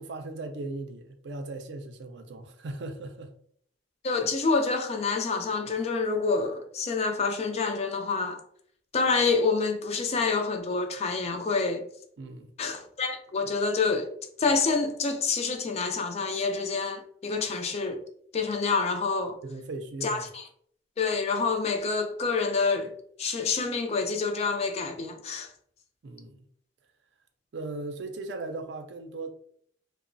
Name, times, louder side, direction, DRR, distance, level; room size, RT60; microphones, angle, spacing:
voice 1, 0.0-3.3 12.2-12.5 19.4-20.3 26.0-26.5 27.5-29.3, right 2 dB, 70° right, 0.4 m, -38 dB
voice 2, 4.0-8.4 8.9-11.8 12.6-14.1 14.4-18.0 18.3-19.4 20.0-20.4 21.0-22.9 23.2-25.5, left 4 dB, 35° left, 0.4 m, -27 dB
2.9 x 2.0 x 2.5 m
head